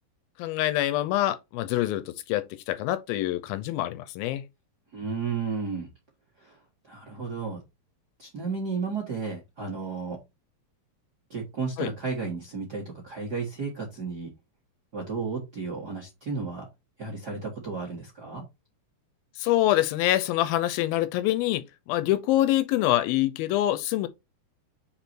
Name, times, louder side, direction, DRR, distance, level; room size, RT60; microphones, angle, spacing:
voice 1, 0.4-4.4 11.8-11.9 19.4-24.1, left 14 dB, 80° left, 2.4 m, -25 dB
voice 2, 4.9-5.9 6.4-6.6 6.8-7.6 8.2-10.2 11.3-14.3 14.9-16.7 17.0-18.4, right 4 dB, 45° right, 1.2 m, -33 dB
5.3 x 4.7 x 4.4 m
omnidirectional pair, 4.3 m